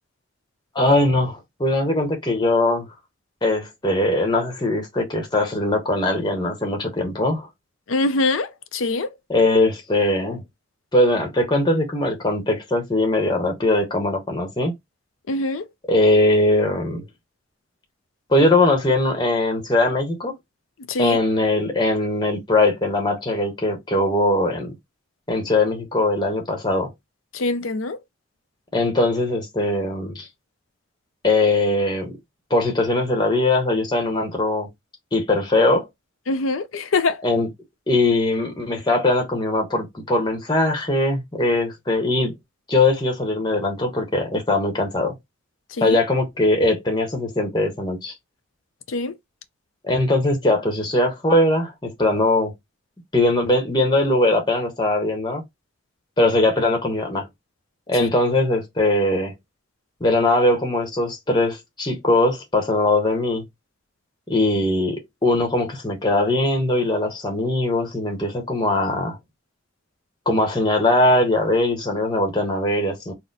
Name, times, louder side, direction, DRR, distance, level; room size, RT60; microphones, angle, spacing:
voice 1, 0.7-2.9 3.4-7.5 9.3-10.4 10.9-14.7 15.9-17.0 18.3-20.3 21.0-24.7 25.3-26.9 28.7-30.3 31.2-32.1 32.5-34.7 35.1-35.9 37.2-37.5 37.9-42.3 42.7-45.2 45.8-48.1 49.8-52.5 53.1-55.4 56.2-57.3 57.9-59.3 60.0-63.4 64.3-69.2 70.3-73.1, left 2 dB, 20° left, 0.9 m, -20 dB
voice 2, 7.9-9.1 15.3-15.6 20.9-21.2 27.3-28.0 36.3-37.2 45.8-46.0 48.9-49.1 58.0-58.1, left 2 dB, 90° left, 0.5 m, -23 dB
4.2 x 2.1 x 3.9 m
head